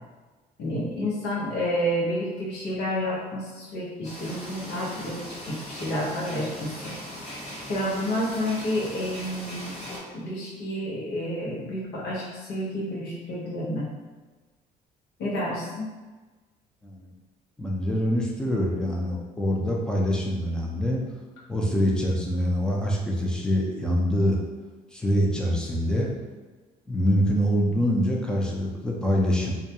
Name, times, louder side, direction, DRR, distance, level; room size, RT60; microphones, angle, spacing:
voice 1, 0.6-7.0 7.7-9.8 10.1-13.9 15.2-15.9, equal, 80° left, -5 dB, 0.8 m, -30 dB
sound 1, 4.0-10.0, equal, 40° left, 1.0 m, -39 dB
voice 2, 17.6-21.0 21.5-24.4 24.9-26.1 26.9-29.5, equal, 5° left, -2 dB, 0.4 m, -25 dB
2.3 x 2.2 x 2.8 m, 1.3 s
cardioid pair, 110°, 17 cm